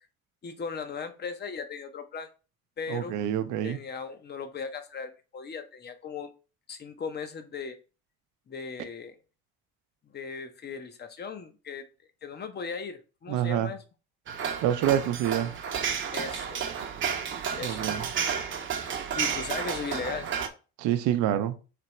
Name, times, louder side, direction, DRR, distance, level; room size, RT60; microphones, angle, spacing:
voice 1, 0.4-2.3 2.8-3.2 3.6-6.3 6.7-7.8 8.5-9.2 10.0-11.8 12.2-13.8 16.1-16.6 17.5-17.8 19.1-20.3, left 5 dB, 35° left, 0.8 m, -37 dB
voice 2, 2.9-3.8 13.3-13.7 14.6-15.5 17.6-18.1 20.8-21.5, right 11 dB, 75° right, 0.6 m, -27 dB
sound 1, 14.3-20.5, right 7 dB, 40° right, 0.7 m, -31 dB
3.4 x 3.0 x 4.3 m
supercardioid pair, 90°, 30 cm